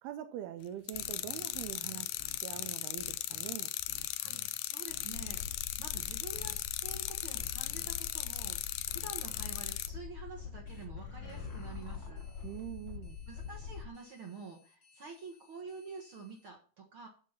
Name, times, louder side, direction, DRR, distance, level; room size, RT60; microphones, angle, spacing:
voice 1, 0.0-3.7 12.4-13.2, right 11 dB, 80° right, 2.6 m, -43 dB
sound 1, 0.9-9.9, left 15 dB, 85° left, 1.9 m, -38 dB
sound 2, 0.9-3.5 3.9-4.5 4.9-5.4 6.0-6.6 7.3-7.9 8.9-9.5 10.6-16.5, left 2 dB, 50° left, 1.1 m, -53 dB
voice 2, 4.1-12.2 13.3-17.1, right 4 dB, 55° right, 1.4 m, -48 dB
sound 3, 5.1-13.9, left 6 dB, 70° left, 2.7 m, -45 dB
12.5 x 4.7 x 5.7 m
omnidirectional pair, 4.6 m